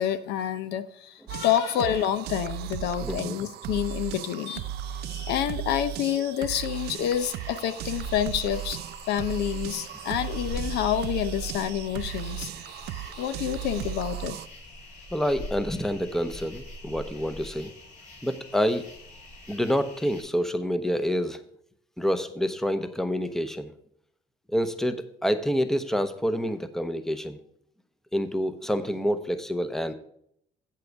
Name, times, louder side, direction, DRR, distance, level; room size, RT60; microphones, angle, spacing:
voice 1, 0.0-8.8 9.1-12.5 12.9-14.3, left 10 dB, 85° left, 13 dB, 0.7 m, -28 dB
sound 1, 1.3-14.5, right 12 dB, 75° right, 0.4 m, -36 dB
voice 2, 3.0-3.4 15.1-17.7 18.2-18.9 19.5-21.4 22.0-23.7 24.5-27.4 28.1-29.9, equal, ahead, 11 dB, 0.7 m, -27 dB
sound 2, 6.7-20.2, left 1 dB, 45° left, 3.1 m, -43 dB
8.4 x 7.6 x 4.6 m, 0.70 s
cardioid pair, 110°, 17 cm